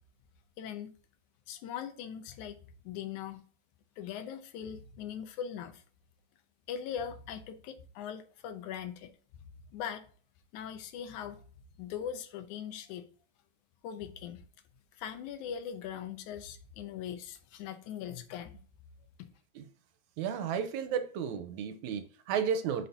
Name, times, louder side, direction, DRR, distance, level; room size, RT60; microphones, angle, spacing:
voice 1, 0.6-0.9 1.5-2.6 2.9-3.4 4.0-5.8 6.7-9.1 9.7-10.0 10.5-11.4 11.8-13.0 13.8-14.4 15.0-18.7, left 8 dB, 90° left, 2.3 m, -40 dB
voice 2, 20.2-22.9, right 7 dB, 80° right, 2.2 m, -33 dB
8.0 x 6.2 x 2.8 m
omnidirectional pair, 3.3 m